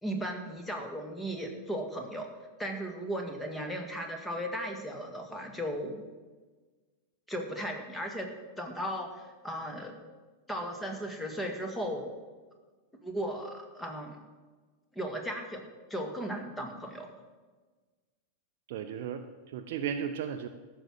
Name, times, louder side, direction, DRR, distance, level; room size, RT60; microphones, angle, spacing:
voice 1, 0.0-2.3 2.6-6.0 7.3-8.3 8.6-10.0 10.5-12.1 13.0-14.2 15.0-17.1, equal, 10° left, 3 dB, 2.0 m, -36 dB
voice 2, 18.7-20.5, right 8 dB, 50° right, 7 dB, 0.7 m, -35 dB
14.5 x 6.3 x 7.5 m, 1.3 s
figure-of-eight pair, 90°, 0 cm